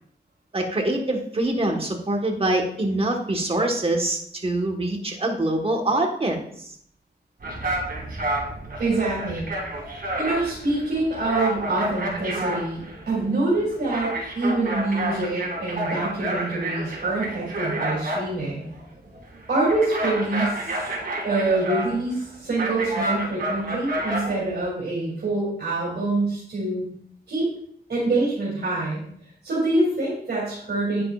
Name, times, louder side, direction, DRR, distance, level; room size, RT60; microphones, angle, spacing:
voice 1, 0.5-6.4, right 1 dB, 35° right, 2 dB, 1.4 m, -24 dB
sound 1, 7.4-24.7, right 1 dB, 60° right, 2.5 m, -30 dB
voice 2, 8.8-9.5 10.2-18.7 19.5-20.7 21.2-26.8 27.3-27.5 27.9-29.0 29.4-31.0, right 2 dB, 75° right, -6 dB, 2.9 m, -25 dB
9.2 x 9.2 x 2.5 m, 0.66 s
wide cardioid pair, 110°, 17 cm